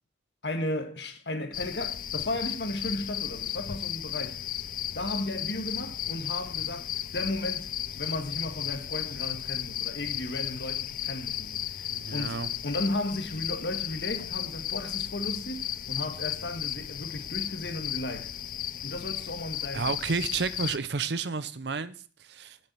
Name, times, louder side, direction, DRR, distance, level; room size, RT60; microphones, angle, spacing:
voice 1, 0.4-4.4 4.9-7.7 8.0-18.3 18.8-19.9, left 1 dB, 65° left, 1.8 m, -35 dB
sound 1, 1.5-20.8, left 11 dB, 45° left, 0.4 m, -35 dB
voice 2, 11.9-12.5 19.7-22.6, right 4 dB, 65° right, 0.6 m, -31 dB
9.8 x 7.4 x 6.1 m
head